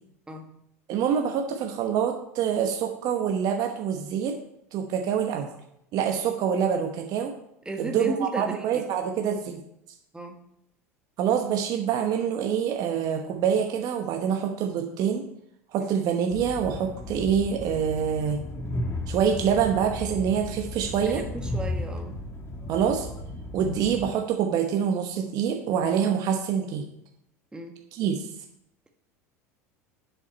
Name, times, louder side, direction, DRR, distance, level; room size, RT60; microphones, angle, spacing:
voice 1, 0.9-4.4 4.7-5.5 5.9-7.3 7.8-9.6 11.2-15.2 15.7-18.4 19.1-21.2 22.7-23.1 23.5-26.8 27.9-28.3, right 8 dB, 50° right, 4 dB, 1.0 m, -26 dB
voice 2, 7.6-8.8 10.1-10.4 15.8-15.9 21.0-22.2 27.5-27.8, right 1 dB, 10° right, 3 dB, 1.1 m, -34 dB
Train, 16.3-24.1, left 1 dB, 30° left, 1.3 m, -35 dB
7.3 x 6.8 x 4.5 m, 0.78 s
hypercardioid pair, 85°, 8 cm